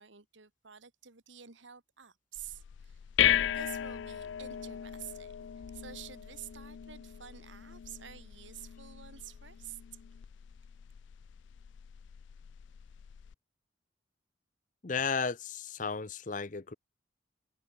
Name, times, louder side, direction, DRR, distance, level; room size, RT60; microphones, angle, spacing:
voice 1, 0.0-3.0 3.5-5.3 5.7-9.8, right 9 dB, 80° right, 1.8 m, -49 dB
sound 1, 2.4-13.3, left 10 dB, 70° left, 0.4 m, -36 dB
voice 2, 14.8-16.7, left 5 dB, 40° left, 0.7 m, -34 dB
head